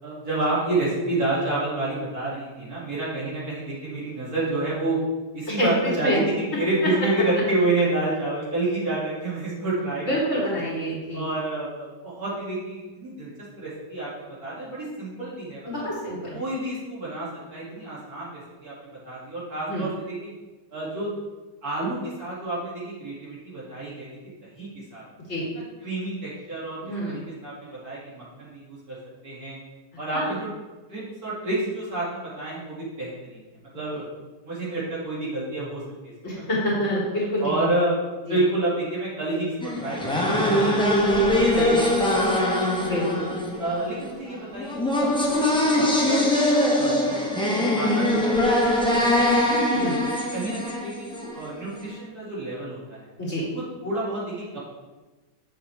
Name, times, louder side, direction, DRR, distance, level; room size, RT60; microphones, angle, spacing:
voice 1, 0.0-5.0 5.3-10.4 11.1-13.3 13.6-15.9 16.3-20.3 20.7-21.1 21.6-24.1 24.5-25.0 25.5-29.0 29.2-29.6 30.0-30.5 30.9-33.4 33.7-34.0 34.4-35.8 36.3-36.5 37.4-41.7 42.3-42.4 43.6-45.1 45.5-46.3 46.7-47.0 47.5-49.9 50.3-53.1 53.8-54.6, right 2 dB, 60° right, -8 dB, 3.0 m, -29 dB
voice 2, 10.1-11.3 15.7-16.4 19.7-19.9 25.3-25.4 26.8-27.3 30.1-30.4 36.2-37.7 38.3-38.4 41.4-41.8 42.8-43.3 49.7-49.9 53.2-53.5, equal, 40° left, -6 dB, 2.3 m, -27 dB
sound 1, 39.6-51.5, left 1 dB, 5° left, 0.5 m, -22 dB
6.7 x 6.6 x 3.5 m, 1.2 s
omnidirectional pair, 1.8 m